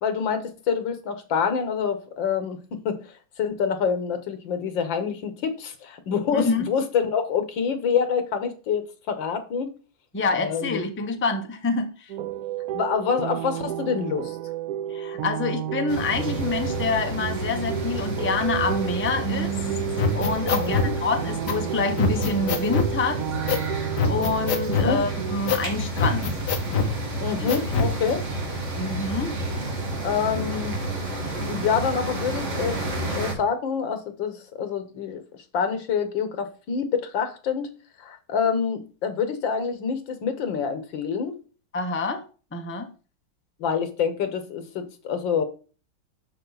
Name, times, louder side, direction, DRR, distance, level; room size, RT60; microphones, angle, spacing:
voice 1, 0.0-2.6 2.9-3.0 3.4-9.7 10.3-10.9 12.7-14.4 20.4-20.9 24.7-25.0 27.2-28.3 30.0-30.8 31.5-32.8 33.1-35.2 35.5-37.7 38.0-41.4 43.6-45.4, left 6 dB, 90° left, 1.9 m, -26 dB
voice 2, 6.3-6.7 10.1-12.1 14.9-23.2 24.0-26.3 27.4-27.5 28.8-29.3 41.7-42.2 42.5-42.9, left 3 dB, 10° left, 0.5 m, -27 dB
sound 1, 12.1-25.4, right 11 dB, 75° right, 0.9 m, -32 dB
sound 2, 15.9-33.3, right 1 dB, 40° right, 2.2 m, -31 dB
sound 3, 20.0-20.9 21.5-21.6 22.0-22.9 23.5-23.7 24.0-24.9 25.5-25.7 26.0-26.9 27.5-27.9, left 4 dB, 65° left, 1.6 m, -24 dB
11.5 x 5.0 x 4.0 m
omnidirectional pair, 2.0 m